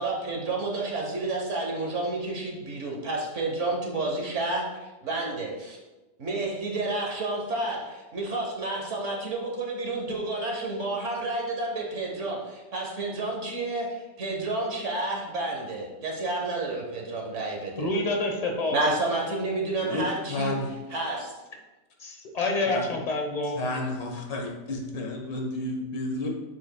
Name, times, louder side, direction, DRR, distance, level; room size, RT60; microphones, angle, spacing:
voice 1, 0.0-5.8 6.2-17.9 18.7-20.5 20.9-21.3, right 2 dB, 45° right, -1 dB, 1.3 m, -30 dB
voice 2, 17.8-18.8 22.0-23.6, left 2 dB, 30° left, 1 dB, 0.8 m, -27 dB
voice 3, 19.8-20.7 22.7-22.9 23.5-26.3, left 1 dB, 85° left, 1 dB, 1.9 m, -31 dB
8.3 x 7.0 x 2.3 m, 1.1 s
omnidirectional pair, 1.9 m